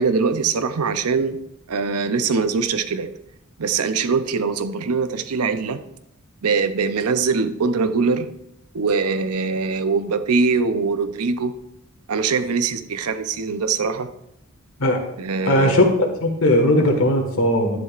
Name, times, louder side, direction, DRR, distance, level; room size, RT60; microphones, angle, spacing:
voice 1, 0.0-1.4 1.7-3.1 3.6-5.8 6.4-8.3 8.7-11.5 12.1-14.1 15.2-15.8, right 4 dB, 85° right, 11 dB, 0.7 m, -22 dB
voice 2, 15.5-15.8 16.2-17.8, left 1 dB, 65° left, 3 dB, 1.7 m, -18 dB
11.0 x 10.5 x 2.5 m, 0.82 s
head